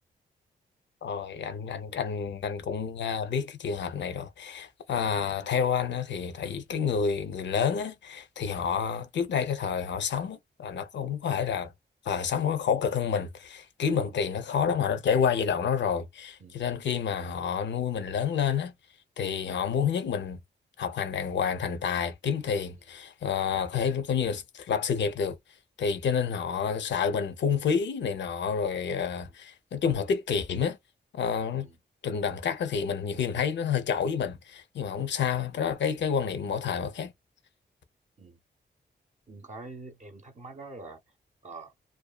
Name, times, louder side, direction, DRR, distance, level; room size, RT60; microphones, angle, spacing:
voice 1, 1.0-11.7 12.0-18.7 19.2-20.4 20.8-25.4 25.8-30.8 31.1-31.7 32.0-37.1, left 7 dB, 80° left, 0.6 m, -29 dB
voice 2, 39.3-41.0 41.4-41.7, right 3 dB, 40° right, 0.6 m, -45 dB
2.6 x 2.2 x 2.2 m
cardioid pair, 70°, 18 cm